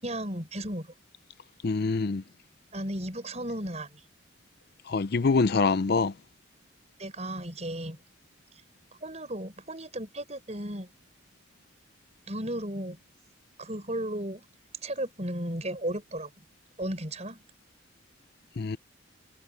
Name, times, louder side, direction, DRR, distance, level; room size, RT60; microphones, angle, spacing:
voice 1, 0.0-0.9 2.7-4.0 7.0-8.0 9.0-10.9 12.3-13.0 13.6-14.5 14.8-16.4 16.8-17.4, right 1 dB, 35° right, 6.9 m, -34 dB
voice 2, 1.6-2.2 4.9-6.1 18.6-18.8, left 4 dB, 50° left, 0.5 m, -25 dB
head